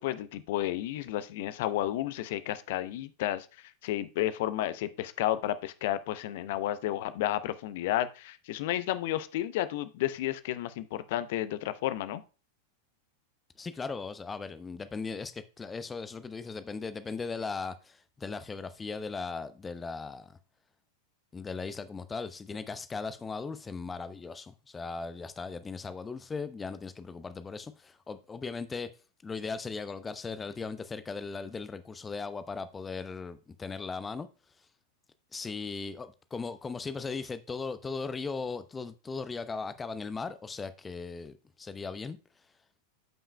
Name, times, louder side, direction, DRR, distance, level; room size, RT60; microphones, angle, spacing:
voice 1, 0.0-12.2, left 13 dB, 50° left, 0.6 m, -32 dB
voice 2, 13.6-20.4 21.3-28.9 29.2-34.3 35.3-42.2, left 4 dB, 15° left, 0.7 m, -38 dB
13.5 x 5.5 x 2.2 m
figure-of-eight pair, 90°, 0 cm